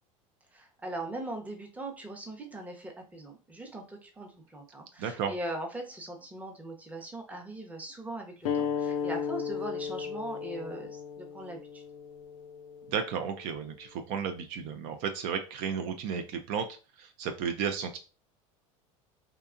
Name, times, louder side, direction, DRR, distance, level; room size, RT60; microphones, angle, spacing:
voice 1, 0.5-11.8, right 1 dB, 10° right, 2 dB, 0.7 m, -40 dB
voice 2, 5.0-5.3 12.9-18.0, right 7 dB, 60° right, 6 dB, 0.4 m, -33 dB
sound 1, 8.4-13.6, left 7 dB, 85° left, 0.4 m, -35 dB
2.8 x 2.2 x 2.4 m, 0.33 s
hypercardioid pair, 90°, 17 cm